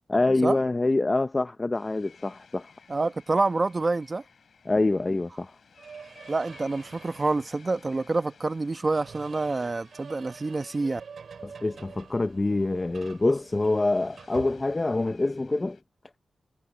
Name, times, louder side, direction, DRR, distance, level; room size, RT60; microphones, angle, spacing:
voice 1, 0.1-2.7 4.7-5.5 11.4-15.8, left 2 dB, 25° left, 0.7 m, -25 dB
sound 1, 1.7-15.8, left 6 dB, 65° left, 4.6 m, -57 dB
voice 2, 2.9-4.2 6.3-11.0, right 3 dB, 35° right, 1.1 m, -27 dB
sound 2, 5.7-7.5 8.8-15.1, right 6 dB, 70° right, 7.3 m, -47 dB
wide cardioid pair, 95°, 0 cm